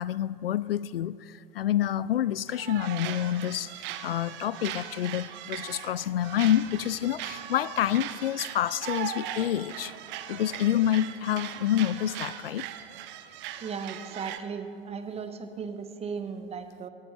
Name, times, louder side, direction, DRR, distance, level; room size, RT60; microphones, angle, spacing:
voice 1, 0.0-9.9 10.3-12.7, left 11 dB, 70° left, 19 dB, 0.4 m, -28 dB
sound 1, 2.5-14.4, right 11 dB, 40° right, 0.9 m, -39 dB
voice 2, 13.6-16.9, right 5 dB, 20° right, 8 dB, 1.2 m, -36 dB
22.5 x 12.0 x 4.4 m, 2.8 s
figure-of-eight pair, 85°, 29 cm